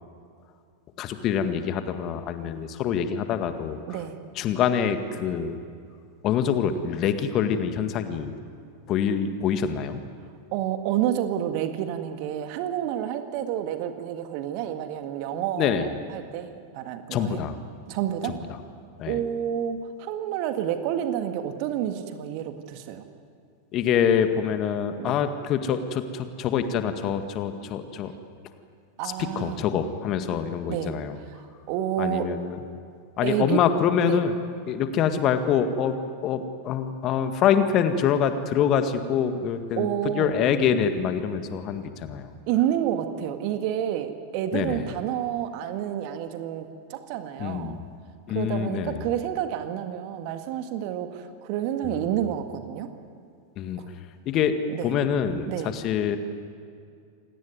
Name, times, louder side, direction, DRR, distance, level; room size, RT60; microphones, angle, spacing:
voice 1, 1.0-3.8 4.4-5.6 6.2-8.4 8.9-10.0 15.3-15.9 17.1-17.6 18.2-18.4 19.0-19.2 23.7-28.1 29.0-31.2 32.0-32.6 33.2-34.3 34.7-36.0 36.2-42.3 44.5-44.9 47.4-47.8 48.3-49.1 51.8-52.1 53.6-53.9 54.3-54.5 54.8-56.2, left 8 dB, 35° left, 8 dB, 1.8 m, -25 dB
voice 2, 3.9-4.2 10.5-17.4 17.9-18.4 19.1-23.0 25.0-25.2 29.0-29.6 30.7-30.9 31.4-32.3 33.2-33.6 34.0-34.2 39.8-40.3 42.5-47.8 48.3-52.9 53.8-53.9 54.7-54.9 55.5-55.7, right 10 dB, 45° right, 8 dB, 1.9 m, -29 dB
28.0 x 18.0 x 9.5 m, 2.3 s
figure-of-eight pair, 90°, 0 cm